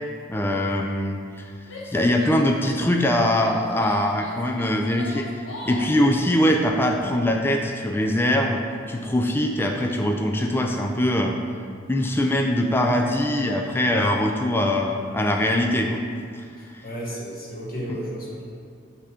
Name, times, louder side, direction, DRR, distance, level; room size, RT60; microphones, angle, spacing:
voice 1, 0.3-1.5 1.8-5.3 5.7-8.6 8.9-11.4 11.9-16.0 16.7-16.8 17.9-18.0, left 1 dB, 10° left, 2 dB, 0.4 m, -22 dB
Female speech woman speaking / Yell, 1.6-2.9 3.4-6.0, left 2 dB, 75° left, 1.1 m, -39 dB
voice 2, 16.6-18.4, equal, 45° left, -6 dB, 1.7 m, -33 dB
8.3 x 3.6 x 5.0 m, 2.2 s
head